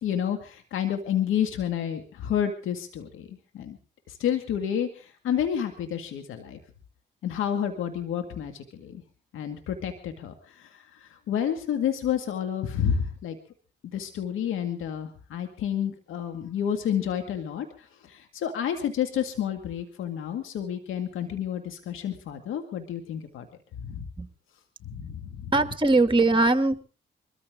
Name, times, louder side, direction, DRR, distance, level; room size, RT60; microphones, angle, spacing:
voice 1, 0.0-3.8 4.1-6.6 7.2-9.0 9.3-13.4 13.9-23.5 23.8-24.1 24.9-25.5, left 9 dB, 85° left, 6 dB, 2.0 m, -30 dB
voice 2, 25.5-26.8, right 2 dB, 25° right, 8 dB, 2.5 m, -21 dB
23.5 x 14.0 x 3.7 m, 0.36 s
supercardioid pair, 55°, 20 cm